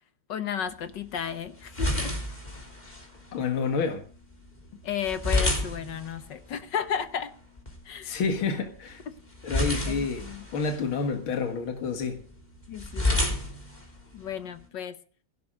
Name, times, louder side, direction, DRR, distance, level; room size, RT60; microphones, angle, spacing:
voice 1, 0.3-2.2 4.8-7.3 7.8-8.2 9.1-9.2 9.9-10.4 12.7-13.4 14.1-14.9, left 8 dB, 65° left, 1.7 m, -33 dB
sound 1, 0.7-14.7, left 1 dB, 20° left, 3.4 m, -33 dB
voice 2, 3.3-4.0 8.0-9.0 9.4-12.2, left 5 dB, 80° left, 2.5 m, -29 dB
16.0 x 11.5 x 6.4 m
omnidirectional pair, 2.2 m